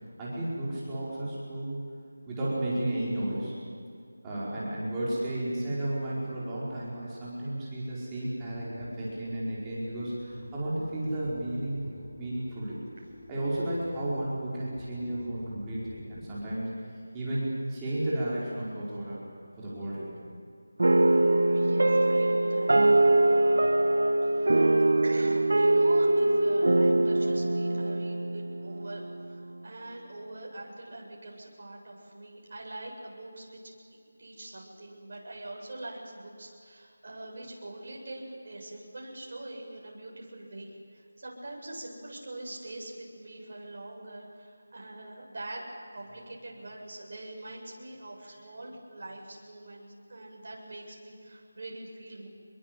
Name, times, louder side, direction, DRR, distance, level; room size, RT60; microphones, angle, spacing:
voice 1, 0.2-1.8 2.3-3.5 4.2-11.8 12.2-12.8 13.3-16.7 17.1-19.2 19.6-20.1, right 1 dB, 10° right, -8 dB, 5.0 m, -33 dB
sound 1, 8.5-16.5, left 1 dB, 50° left, 4.4 m, -49 dB
sound 2, 20.8-29.3, right 2 dB, 75° right, 1.4 m, -23 dB
voice 2, 21.5-22.7 23.8-23.9 24.2-24.7 25.0-29.0 29.3-33.7 34.2-52.3, right 2 dB, 50° right, -2 dB, 7.4 m, -43 dB
26.5 x 22.0 x 7.8 m, 2.3 s
figure-of-eight pair, 175°, 0 cm